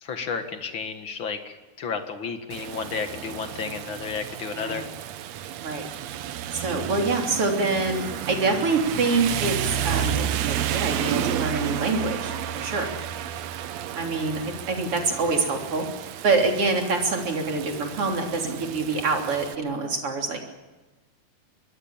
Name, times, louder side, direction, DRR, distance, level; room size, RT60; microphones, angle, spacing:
voice 1, 0.0-4.9, left 5 dB, 45° left, 7 dB, 1.7 m, -32 dB
Rain, 2.5-19.5, right 10 dB, 85° right, 1.5 m, -31 dB
voice 2, 4.5-4.9 5.6-5.8 6.5-12.9 13.9-15.9 16.2-20.4, right 3 dB, 40° right, 2 dB, 3.9 m, -26 dB
25.0 x 21.0 x 7.3 m, 1.2 s
omnidirectional pair, 4.5 m